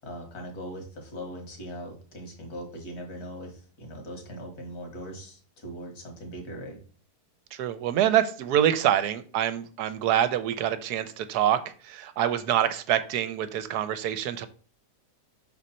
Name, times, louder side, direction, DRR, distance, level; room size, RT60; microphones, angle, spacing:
voice 1, 0.0-6.8, equal, 65° left, 2 dB, 2.2 m, -40 dB
voice 2, 7.5-14.5, right 10 dB, 80° right, 12 dB, 1.1 m, -26 dB
6.2 x 4.0 x 4.2 m, 0.40 s
omnidirectional pair, 1.8 m